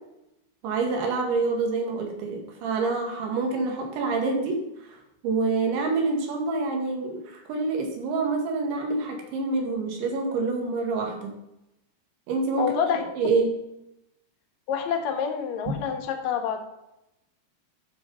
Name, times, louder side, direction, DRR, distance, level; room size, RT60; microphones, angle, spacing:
voice 1, 0.6-4.6 4.9-5.0 5.2-11.3 12.3-12.8 13.2-13.5 15.7-15.8, right 3 dB, 85° right, 2 dB, 4.3 m, -27 dB
voice 2, 12.6-13.0 14.7-16.6, left 7 dB, 65° left, 4 dB, 2.0 m, -27 dB
11.5 x 6.6 x 5.6 m, 0.85 s
omnidirectional pair, 5.1 m